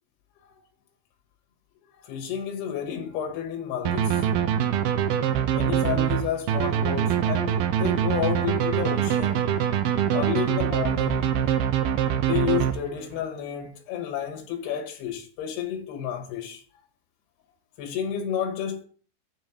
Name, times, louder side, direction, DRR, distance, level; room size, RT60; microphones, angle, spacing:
voice 1, 2.0-4.3 5.5-9.5 10.1-11.3 12.2-16.6 17.8-18.8, left 9 dB, 85° left, 3.3 m, -31 dB
sound 1, 3.8-13.2, right 9 dB, 75° right, 2.4 m, -24 dB
9.2 x 3.6 x 7.1 m
omnidirectional pair, 4.5 m